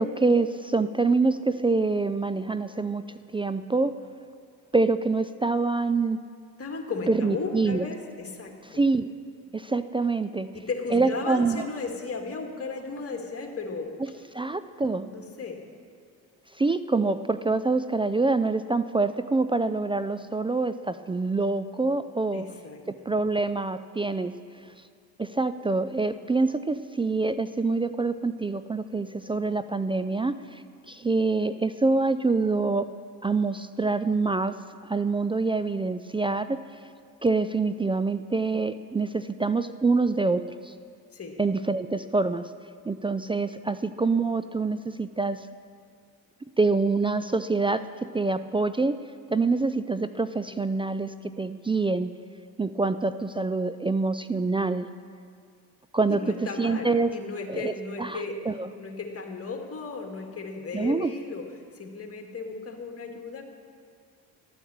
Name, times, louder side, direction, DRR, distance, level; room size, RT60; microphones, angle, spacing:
voice 1, 0.0-3.0 3.3-4.0 4.7-6.2 7.1-7.9 8.7-9.1 9.5-10.5 10.9-11.6 14.3-15.1 16.6-22.5 22.9-24.3 25.2-32.9 33.2-34.6 34.9-36.6 37.2-40.7 41.4-42.5 42.9-45.5 46.6-49.0 49.3-52.1 52.6-54.9 55.9-56.2 56.6-57.1 57.5-57.7 58.0-58.7 60.7-61.1, right 3 dB, 15° right, 12 dB, 0.3 m, -26 dB
voice 2, 6.6-8.8 10.5-14.3 15.1-15.6 22.3-23.1 41.1-41.4 56.1-58.5 58.8-63.4, left 4 dB, 30° left, 2 dB, 2.2 m, -35 dB
13.0 x 9.1 x 7.1 m, 2.1 s
hypercardioid pair, 60°, 44 cm